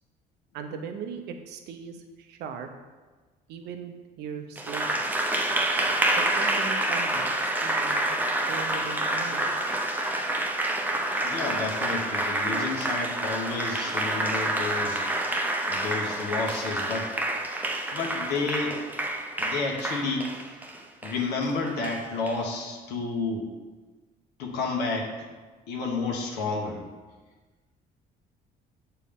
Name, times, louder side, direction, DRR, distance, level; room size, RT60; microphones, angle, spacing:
voice 1, 0.5-2.7 3.5-5.0 6.2-8.2 8.5-9.7, right 6 dB, 80° right, 6 dB, 0.7 m, -39 dB
Applause, 4.6-22.4, right 1 dB, 10° right, 0.6 m, -28 dB
voice 2, 11.2-15.0 15.7-17.1 17.9-18.8 19.4-20.6 21.0-23.5 24.4-25.3 25.7-26.8, left 3 dB, 80° left, 0 dB, 1.1 m, -31 dB
7.1 x 4.5 x 3.6 m, 1.3 s
cardioid pair, 110°, 17 cm